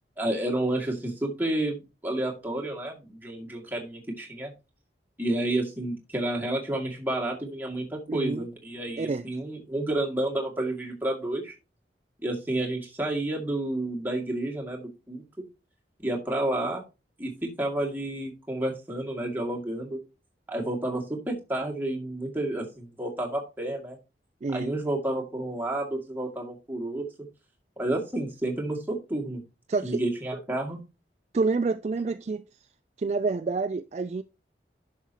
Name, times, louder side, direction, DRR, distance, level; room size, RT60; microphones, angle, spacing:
voice 1, 0.2-1.8 2.0-4.5 5.2-11.5 12.2-15.2 16.0-16.8 17.2-20.0 20.5-24.0 24.5-27.1 27.8-29.4 29.8-30.8, right 1 dB, 10° right, 2.1 m, -30 dB
voice 2, 8.1-8.5 9.0-9.2 24.4-24.7 29.7-30.0 31.3-32.4 33.0-34.2, right 4 dB, 35° right, 0.3 m, -28 dB
10.0 x 6.5 x 2.8 m
head